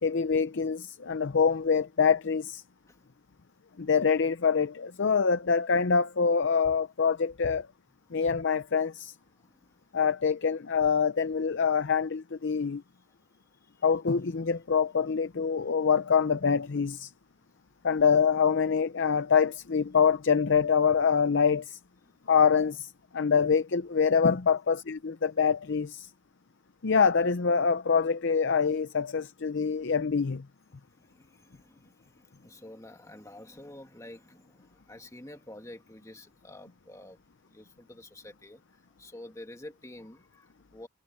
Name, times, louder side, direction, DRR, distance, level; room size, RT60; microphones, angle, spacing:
voice 1, 0.0-2.6 3.8-7.7 8.1-9.1 9.9-12.8 13.8-17.1 17.8-21.8 22.3-22.9 23.1-26.1 26.8-30.4, left 6 dB, 55° left, 0.6 m, -25 dB
voice 2, 9.4-9.8 13.6-13.8 22.0-22.1 30.7-37.2 37.4-38.6 39.0-40.9, left 1 dB, 15° left, 1.9 m, -49 dB
head